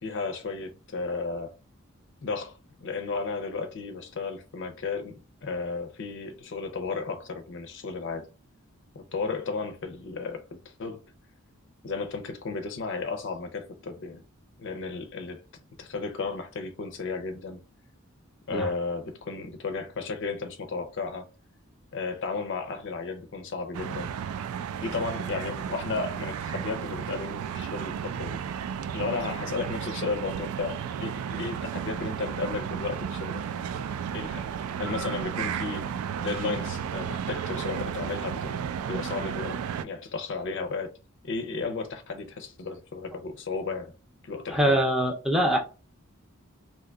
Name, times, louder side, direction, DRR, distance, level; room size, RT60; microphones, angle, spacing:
voice 1, 0.0-1.6 2.2-8.3 9.0-11.0 11.8-14.2 14.6-15.4 15.8-17.6 18.5-21.3 21.9-24.1 24.8-28.4 28.9-33.8 34.1-35.9 36.2-38.6 38.9-40.9 41.2-43.9 44.2-44.8, left 4 dB, 60° left, 0.5 m, -34 dB
sound 1, 23.7-39.9, right 8 dB, 80° right, 0.3 m, -33 dB
voice 2, 44.5-45.6, right 1 dB, ahead, 0.5 m, -23 dB
2.7 x 2.2 x 3.7 m
head